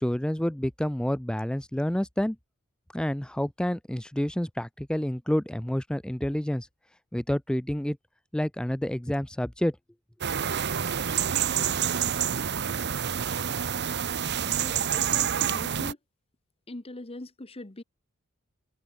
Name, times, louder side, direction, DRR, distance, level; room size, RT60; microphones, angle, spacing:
voice 1, 0.0-2.4 2.9-6.7 7.1-8.0 8.3-9.8, equal, 5° left, 0.5 m, -28 dB
sound 1, 10.2-15.9, right 8 dB, 55° right, 0.9 m, -28 dB
voice 2, 14.6-16.0 16.7-17.8, left 1 dB, 30° left, 1.2 m, -41 dB
head